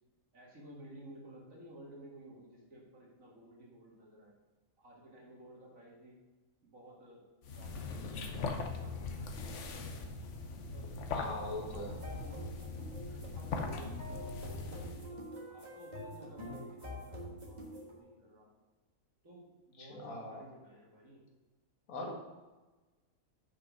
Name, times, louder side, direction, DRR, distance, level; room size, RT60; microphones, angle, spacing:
voice 1, 0.3-4.3 4.8-6.2 6.6-8.2 8.6-10.0 10.7-11.1 11.5-12.5 12.8-18.5 19.2-21.3, right 1 dB, 70° right, -3 dB, 2.3 m, -54 dB
sound 1, 7.4-15.1, left 4 dB, 60° left, 1.1 m, -41 dB
voice 2, 11.1-11.9 19.8-20.4 21.9-22.1, left 2 dB, 80° left, 1 dB, 1.6 m, -41 dB
sound 2, 11.9-18.0, equal, 30° right, 1.7 m, -46 dB
6.3 x 5.5 x 6.0 m, 1.2 s
omnidirectional pair, 1.5 m